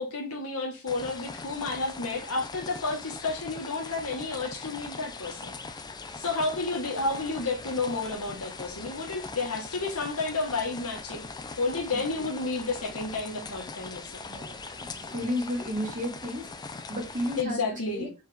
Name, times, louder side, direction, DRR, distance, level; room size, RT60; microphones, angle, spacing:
voice 1, 0.0-5.6 6.1-11.3 11.6-14.5 17.4-18.1, left 3 dB, 80° left, 1.4 m, -31 dB
sound 1, 0.9-17.4, left 4 dB, 20° left, 0.3 m, -41 dB
voice 2, 11.9-12.3 14.2-18.1, left 1 dB, 35° right, 1.5 m, -34 dB
4.5 x 3.5 x 3.4 m
head